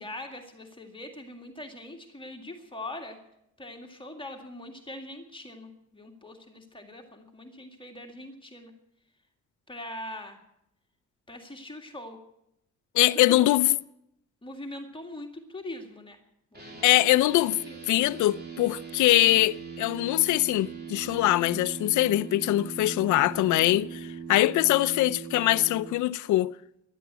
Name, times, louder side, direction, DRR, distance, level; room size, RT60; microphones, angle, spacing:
voice 1, 0.0-3.2 3.6-8.7 9.7-10.4 11.3-12.2 13.0-13.6 14.4-16.2 16.5-17.3 17.6-17.8, left 1 dB, 15° left, 2.0 m, -42 dB
voice 2, 12.9-13.8 16.8-17.6 17.9-26.5, left 16 dB, 80° left, 0.5 m, -23 dB
sound 1, 16.5-25.9, right 5 dB, 35° right, 3.5 m, -40 dB
15.0 x 11.5 x 8.1 m
cardioid pair, 90°, 30 cm